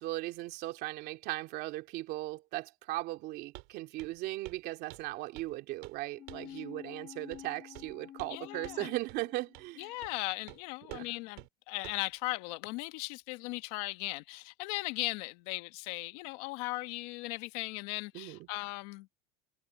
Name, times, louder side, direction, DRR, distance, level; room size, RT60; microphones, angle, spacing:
voice 1, 0.0-9.9 10.9-11.1 18.1-18.4, right 18 dB, 60° right, 2.8 m, -38 dB
Walk footsteps, 3.5-3.7 4.0-4.2 4.4-4.6 4.9-5.6 5.8-6.0 6.3-6.5 7.3-7.5 7.7-8.4 8.6-8.8 9.1-9.2 9.5-9.7 10.0-10.2 10.5-10.6 10.9-11.1 11.4-11.5 11.8-12.1, right 29 dB, 75° right, 5.2 m, -49 dB
sound 1, 6.1-9.9 10.3-10.4, left 11 dB, 40° left, 1.5 m, -49 dB
voice 2, 8.3-8.9 9.8-19.1, left 22 dB, 80° left, 1.4 m, -38 dB
cardioid pair, 140°, 19 cm